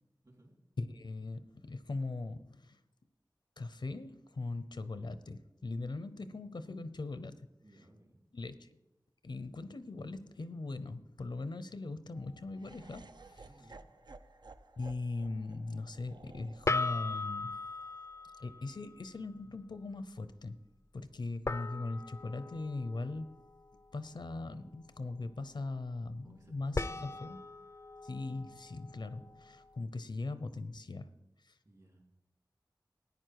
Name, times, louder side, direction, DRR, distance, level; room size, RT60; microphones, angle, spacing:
voice 1, 0.8-2.8 3.6-7.4 8.3-8.7 9.2-13.5 14.8-17.6 18.4-20.6 20.9-23.3 23.9-27.4 28.0-31.1 31.5-31.6, left 3 dB, 80° left, 12 dB, 0.7 m, -40 dB
voice 2, 7.6-8.2 13.4-13.8 26.2-27.2 31.6-32.0, right 1 dB, 55° right, 0 dB, 3.7 m, -60 dB
sound 1, 12.2-12.4 16.7-19.0 21.5-24.0 26.7-29.8, left 3 dB, 40° left, 0.4 m, -39 dB
Laughter, 12.6-18.7, right 3 dB, 70° right, 0.5 m, -56 dB
14.0 x 9.6 x 4.7 m, 0.95 s
wide cardioid pair, 60°, 8 cm